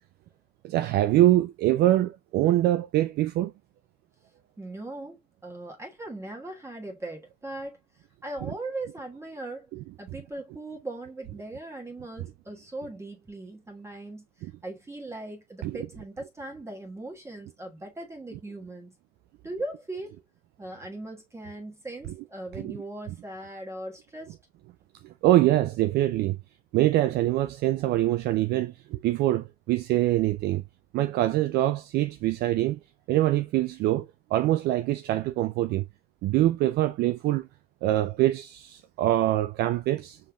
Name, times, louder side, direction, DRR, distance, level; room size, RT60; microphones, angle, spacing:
voice 1, 0.6-3.5 9.7-9.8 14.4-14.5 15.6-15.9 22.6-22.7 25.0-26.4 26.7-30.6 30.9-32.8 33.1-34.1 34.3-35.8 36.2-37.5 37.8-40.2, right 14 dB, 55° right, 0.4 m, -24 dB
voice 2, 4.6-7.8 8.2-9.7 10.0-14.2 14.6-18.9 19.4-20.2 20.6-24.3, right 2 dB, 15° right, 1.4 m, -39 dB
5.5 x 3.3 x 2.3 m
supercardioid pair, 95°, 20 cm